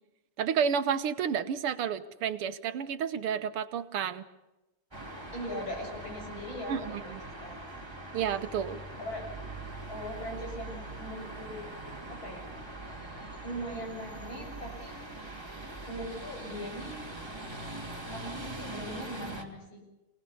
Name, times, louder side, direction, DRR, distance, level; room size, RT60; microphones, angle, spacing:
voice 1, 0.4-4.2 6.7-7.2 8.1-8.8, right 7 dB, 80° right, 11 dB, 2.0 m, -31 dB
sound 1, 4.9-19.4, right 2 dB, 10° right, 2.4 m, -42 dB
voice 2, 5.3-7.7 9.0-9.2 9.9-11.7 12.1-12.4 13.4-15.0 15.9-17.0 18.1-19.8, equal, 60° left, 1 dB, 7.8 m, -40 dB
27.5 x 18.5 x 7.0 m, 1.0 s
omnidirectional pair, 2.4 m